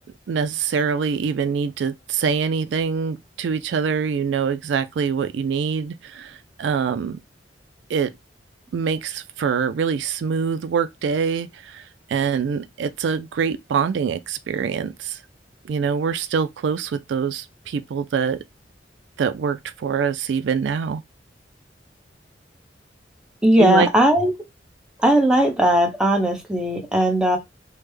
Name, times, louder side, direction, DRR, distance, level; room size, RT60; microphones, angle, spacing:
voice 1, 0.3-7.2 7.9-8.1 8.7-15.2 15.6-18.4 19.2-21.0 23.6-23.9, right 6 dB, 75° right, 0.3 m, -24 dB
voice 2, 23.4-24.3 25.0-27.4, right 1 dB, 5° right, 0.8 m, -18 dB
3.3 x 2.1 x 3.2 m
head